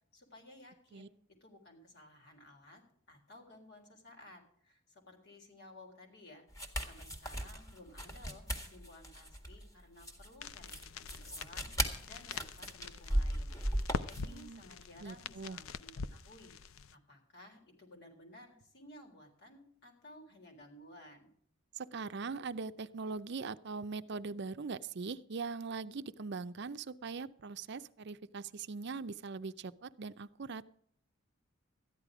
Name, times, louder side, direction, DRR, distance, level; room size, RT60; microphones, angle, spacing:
voice 1, 0.1-1.1 1.4-2.8 3.1-13.6 14.0-16.5 16.9-21.3, left 1 dB, 55° left, 2 dB, 3.8 m, -56 dB
sound 1, 6.5-14.4, equal, 15° left, 1.9 m, -37 dB
sound 2, 10.4-16.9, left 5 dB, 85° left, 0.6 m, -44 dB
voice 2, 14.2-14.6 15.0-15.6 21.7-30.6, right 4 dB, 55° right, 12 dB, 0.5 m, -41 dB
14.0 x 10.5 x 4.9 m, 0.63 s
head